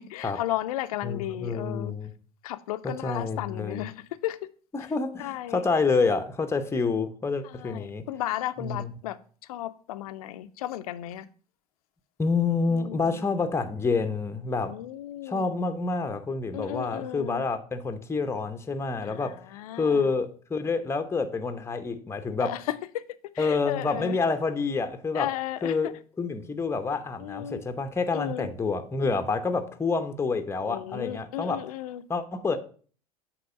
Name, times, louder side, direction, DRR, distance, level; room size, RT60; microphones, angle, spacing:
voice 1, 0.0-1.9 2.4-3.9 4.2-4.4 5.2-5.7 7.4-9.2 9.5-11.3 12.7-13.3 14.6-15.5 16.5-17.4 19.0-20.1 22.4-23.0 23.3-24.2 25.1-25.9 27.2-27.6 28.1-28.5 30.6-32.0, left 14 dB, 70° left, 0.5 m, -34 dB
voice 2, 1.0-2.1 2.8-3.8 4.7-8.1 8.6-8.9 12.2-14.8 15.3-19.4 19.8-22.6 23.4-25.3 25.6-31.6 32.1-32.6, left 4 dB, 15° left, 0.8 m, -28 dB
7.7 x 3.1 x 5.2 m
hypercardioid pair, 75°, 19 cm